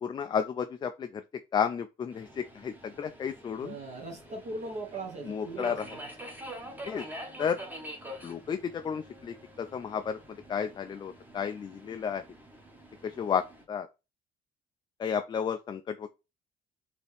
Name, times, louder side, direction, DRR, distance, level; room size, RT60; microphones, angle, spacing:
voice 1, 0.0-1.2 1.5-3.8 5.2-5.9 6.9-7.1 7.4-7.6 8.2-12.2 13.0-13.9 15.0-16.1, left 7 dB, 25° left, 0.4 m, -32 dB
Subway metro underground, 2.1-13.6, equal, 10° right, 1.1 m, -46 dB
voice 2, 3.6-6.0, right 2 dB, 45° right, 1.1 m, -39 dB
4.2 x 2.9 x 3.3 m
cardioid pair, 110°, 17 cm